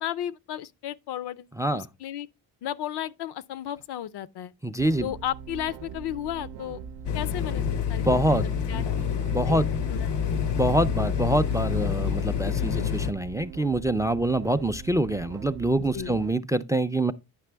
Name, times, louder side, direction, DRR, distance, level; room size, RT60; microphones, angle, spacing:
voice 1, 0.0-1.5 1.7-2.3 2.6-4.5 5.0-6.8 7.1-8.0 8.7-8.8 9.4-9.6 9.9-10.1 12.6-12.8 15.8-16.2, left 11 dB, 75° left, 0.6 m, -34 dB
voice 2, 4.6-5.1 8.0-8.5 8.7-8.9 9.3-9.7 10.5-17.1, right 1 dB, 10° right, 0.3 m, -25 dB
sound 1, 4.8-16.3, right 6 dB, 80° right, 0.6 m, -41 dB
sound 2, 7.1-13.1, left 8 dB, 90° left, 1.0 m, -27 dB
9.8 x 5.9 x 3.3 m
cardioid pair, 100°, 41 cm